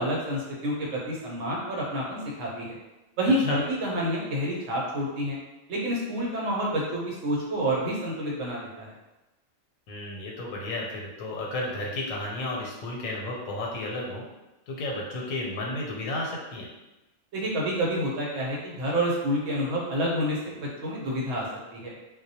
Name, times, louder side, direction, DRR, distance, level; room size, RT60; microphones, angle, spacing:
voice 1, 0.0-2.7 3.2-5.4 5.7-8.9 17.3-21.5 21.7-21.9, equal, 70° right, -4 dB, 1.0 m, -28 dB
voice 2, 9.9-14.2 14.7-16.7, left 2 dB, 85° left, -2 dB, 1.0 m, -32 dB
2.2 x 2.1 x 2.7 m, 1.0 s
omnidirectional pair, 1.4 m